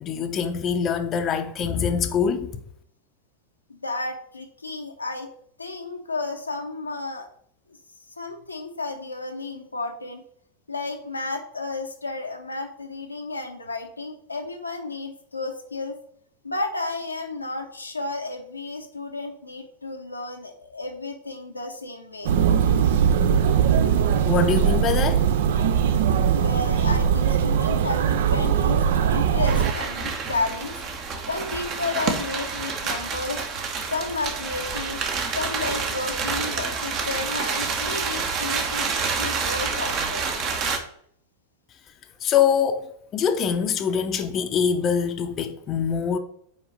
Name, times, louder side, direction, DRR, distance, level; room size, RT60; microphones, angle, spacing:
voice 1, 0.0-2.5 24.3-25.2 42.2-42.9 43.1-46.2, left 7 dB, 30° left, 0.6 m, -24 dB
voice 2, 3.7-5.3 5.6-7.3 8.2-10.2 10.7-16.0 16.4-22.4 26.4-30.7 31.3-33.4 33.9-35.0 35.3-40.3, left 3 dB, 85° left, 0.7 m, -32 dB
sound 1, 22.2-29.7, right 8 dB, 55° right, 0.4 m, -20 dB
sound 2, 29.5-40.8, right 5 dB, 35° right, 0.9 m, -28 dB
5.2 x 4.7 x 4.9 m
figure-of-eight pair, 90°, 0 cm